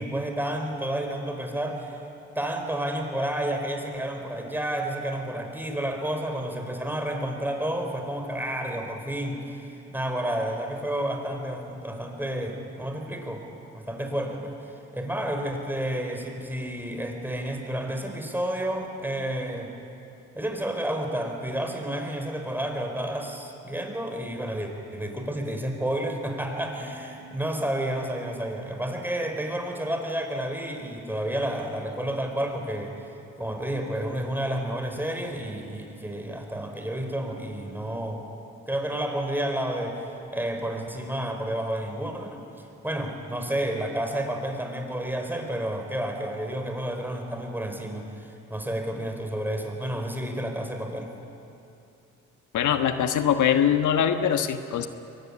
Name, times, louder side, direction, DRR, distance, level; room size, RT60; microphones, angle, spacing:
voice 1, 0.0-2.0 2.3-13.4 13.7-14.5 14.9-19.7 20.3-32.9 33.4-38.3 38.7-40.0 40.3-42.4 42.8-51.1, right 1 dB, 5° right, 3 dB, 4.8 m, -30 dB
voice 2, 52.5-54.9, left 9 dB, 75° left, 7 dB, 1.4 m, -22 dB
23.5 x 23.0 x 10.0 m, 2.7 s
cardioid pair, 90°, 30 cm